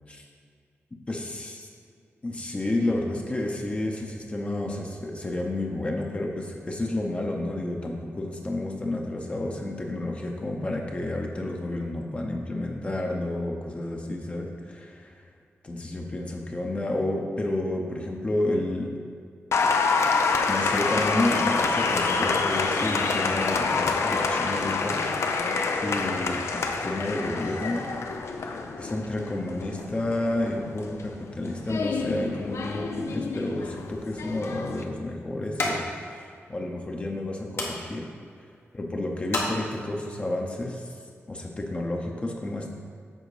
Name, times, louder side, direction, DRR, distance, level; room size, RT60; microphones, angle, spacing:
voice 1, 1.1-1.7 2.2-15.1 15.6-18.9 20.5-25.0 25.7-27.9 28.8-38.1 38.7-40.9 41.3-42.7, left 1 dB, 25° left, 1 dB, 0.8 m, -30 dB
Applause, 19.5-34.8, left 4 dB, 80° left, 0.6 m, -27 dB
sound 1, 33.9-40.2, left 2 dB, 60° left, 1.2 m, -36 dB
7.7 x 5.0 x 4.9 m, 2.2 s
wide cardioid pair, 140°, 5 cm